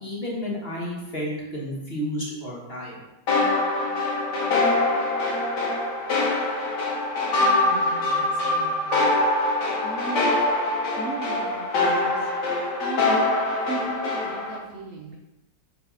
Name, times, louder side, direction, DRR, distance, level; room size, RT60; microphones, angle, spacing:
voice 1, 0.0-3.0, equal, 35° left, -4 dB, 1.5 m, -31 dB
sound 1, 3.3-14.6, left 2 dB, 75° left, 1.9 m, -24 dB
voice 2, 7.4-9.1 9.8-10.3 11.0-12.3 12.8-13.2 13.6-15.2, right 2 dB, 60° right, -2 dB, 1.0 m, -37 dB
5.3 x 4.0 x 5.5 m, 0.99 s
omnidirectional pair, 1.9 m